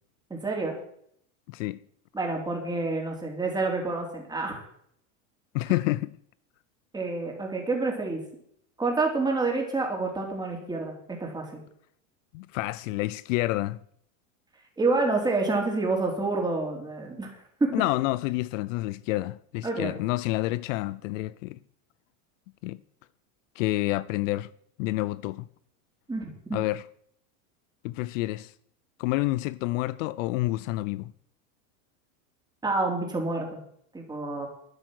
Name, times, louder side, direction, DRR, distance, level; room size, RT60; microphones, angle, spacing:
voice 1, 0.3-0.8 2.1-4.6 6.9-8.2 8.8-11.6 14.8-17.3 17.6-17.7 19.6-20.0 26.1-26.6 32.6-33.6 33.9-34.5, right 3 dB, 10° right, 3.5 m, -28 dB
voice 2, 1.5-1.8 5.5-6.2 12.3-13.8 17.7-21.6 22.6-22.8 23.6-24.5 24.8-25.5 26.5-26.8 27.8-28.5 29.0-31.1, left 18 dB, 65° left, 0.6 m, -28 dB
12.5 x 10.0 x 6.4 m
supercardioid pair, 145°, 42 cm